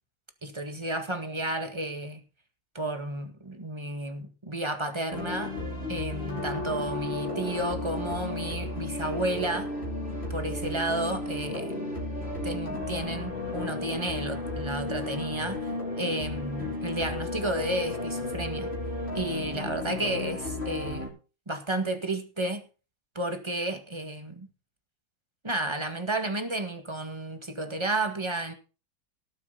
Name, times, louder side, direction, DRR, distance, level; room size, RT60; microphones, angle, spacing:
voice 1, 0.4-2.2 2.7-5.5 5.9-9.7 10.3-11.9 12.4-15.7 16.0-18.7 19.1-21.1 21.5-22.6 23.1-24.5 25.4-28.5, right 1 dB, 15° right, 1.8 m, -32 dB
sound 1, 5.1-21.1, left 2 dB, 30° left, 5.0 m, -33 dB
18.5 x 8.0 x 4.0 m
omnidirectional pair, 2.1 m